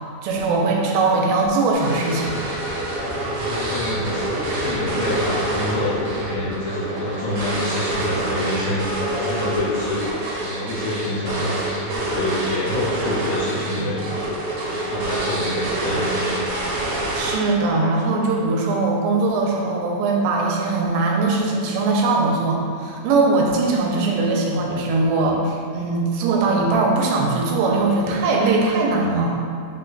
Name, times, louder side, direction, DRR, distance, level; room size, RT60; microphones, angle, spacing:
voice 1, 0.2-2.3 17.1-29.3, right 3 dB, 90° right, -1 dB, 2.5 m, -20 dB
sound 1, 1.7-17.7, right 1 dB, 75° right, 2.1 m, -26 dB
sound 2, 2.2-6.6, left 1 dB, 60° left, 1.6 m, -34 dB
voice 2, 3.3-10.1 10.4-16.4, left 1 dB, 80° left, -9 dB, 2.4 m, -27 dB
5.6 x 2.2 x 3.9 m, 2.2 s
omnidirectional pair, 4.2 m